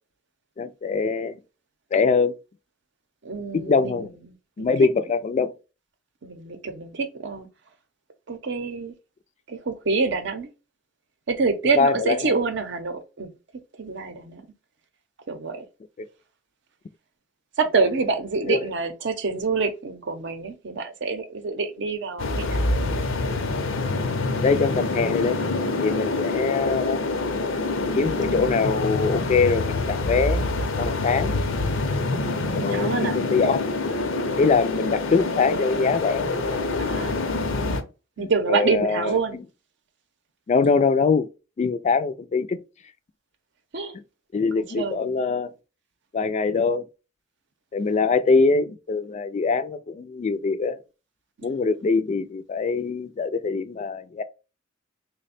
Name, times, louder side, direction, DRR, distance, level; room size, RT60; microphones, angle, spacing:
voice 1, 0.6-1.4 1.9-2.3 3.5-4.1 4.6-5.5 11.8-12.3 16.0-16.1 18.5-18.7 24.4-25.4 25.8-27.0 27.9-30.5 30.8-31.3 32.5-33.6 34.4-36.3 38.2-39.4 40.5-41.3 41.6-42.6 44.3-45.5 46.1-46.8 47.7-50.8 51.4-54.2, left 4 dB, 35° left, 0.3 m, -23 dB
voice 2, 3.2-4.7 6.2-7.5 8.3-8.9 9.5-10.5 11.3-13.3 13.8-14.4 15.3-15.7 17.6-22.7 32.5-33.2 36.8-37.2 38.2-39.4 43.7-43.9 44.5-45.1, right 4 dB, 65° right, 0.6 m, -27 dB
sound 1, 22.2-37.8, left 2 dB, 85° left, 0.6 m, -26 dB
3.4 x 2.1 x 4.0 m
head